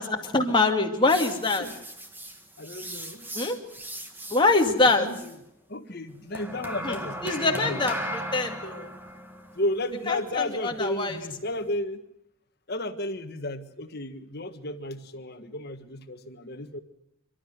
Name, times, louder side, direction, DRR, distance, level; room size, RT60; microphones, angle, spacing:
voice 1, 0.0-1.7 3.3-3.6 4.3-5.1 6.8-8.9 10.1-11.2, left 3 dB, 25° left, 2 dB, 2.3 m, -24 dB
sound 1, 1.1-5.4 6.3-11.7, right 1 dB, 10° right, 1.8 m, -38 dB
voice 2, 2.6-3.3 4.8-5.4 5.7-7.8 9.5-12.0 12.7-16.8, left 1 dB, 50° left, 8 dB, 1.6 m, -33 dB
29.5 x 12.5 x 8.0 m, 0.82 s
head